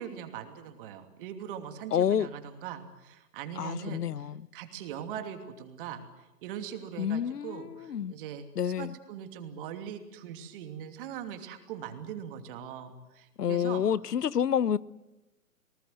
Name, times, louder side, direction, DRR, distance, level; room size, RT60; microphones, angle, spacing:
voice 1, 0.0-6.0 6.4-13.8, right 9 dB, 35° right, 2.8 m, -41 dB
voice 2, 1.9-2.3 3.6-4.4 7.0-8.1 8.6-8.9 13.4-14.8, left 8 dB, 80° left, 0.9 m, -28 dB
27.0 x 19.5 x 8.1 m
hypercardioid pair, 140°, 46 cm